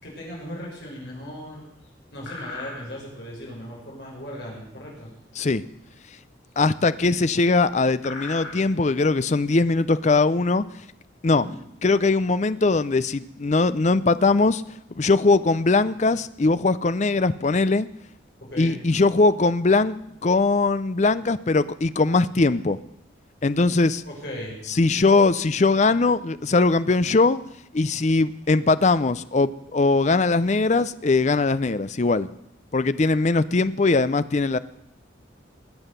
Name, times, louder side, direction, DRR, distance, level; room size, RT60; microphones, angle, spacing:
voice 1, 0.0-1.6 2.1-5.1 11.3-11.5 18.4-18.8 24.0-24.6, equal, 55° left, -3 dB, 6.2 m, -37 dB
sound 1, 1.0-1.5 1.8-1.9 2.2-3.2 3.8-5.1 5.4-5.8 6.0-6.2 6.5-6.6 7.3-7.5 7.8-9.2 9.6-9.9 10.4-11.5 12.0-12.3 12.7-12.8 13.1-13.5 14.2-14.3 14.6-14.8, left 3 dB, 80° left, 4.8 m, -41 dB
voice 2, 6.6-10.7 11.2-11.5 11.8-14.6 15.0-17.9 18.6-22.8 23.4-24.0 24.7-27.4 27.7-32.3 32.7-34.6, left 3 dB, 35° left, 15 dB, 0.5 m, -20 dB
20.0 x 7.9 x 6.7 m, 0.79 s
head